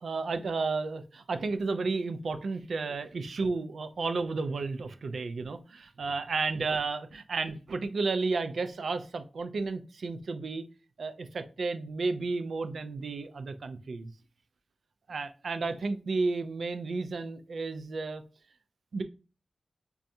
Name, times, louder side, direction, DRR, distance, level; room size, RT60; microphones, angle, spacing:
voice 1, 0.0-10.7 11.0-14.1 15.1-18.2 18.9-19.0, right 3 dB, 80° right, 9 dB, 0.4 m, -32 dB
5.1 x 2.3 x 2.7 m, 0.35 s
wide cardioid pair, 100°, 0 cm